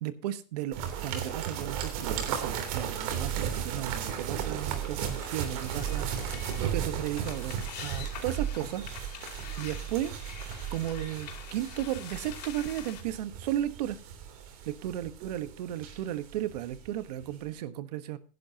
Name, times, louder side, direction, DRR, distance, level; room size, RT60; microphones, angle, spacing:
voice 1, 0.0-8.9 9.6-14.0 14.6-18.2, right 12 dB, 75° right, 13 dB, 1.3 m, -35 dB
sound 1, 0.7-16.9 17.2-17.3, right 8 dB, 55° right, 3.2 m, -35 dB
sound 2, 4.8-13.0, left 9 dB, 90° left, 4.3 m, -46 dB
16.5 x 11.0 x 2.8 m, 0.37 s
supercardioid pair, 160°, 21 cm